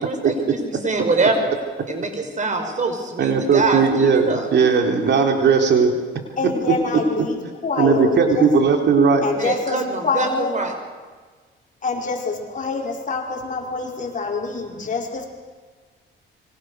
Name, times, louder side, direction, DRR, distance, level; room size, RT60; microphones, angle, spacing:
voice 1, 0.0-1.5 1.9-4.5 9.4-10.7, right 3 dB, 40° right, 5 dB, 5.6 m, -24 dB
voice 2, 3.2-5.9 7.8-9.3, right 5 dB, 60° right, 3 dB, 3.8 m, -17 dB
voice 3, 6.4-8.5 9.2-10.5 11.8-15.3, left 4 dB, 40° left, 0 dB, 5.4 m, -26 dB
26.5 x 24.0 x 6.6 m, 1.4 s
cardioid pair, 90°, 20 cm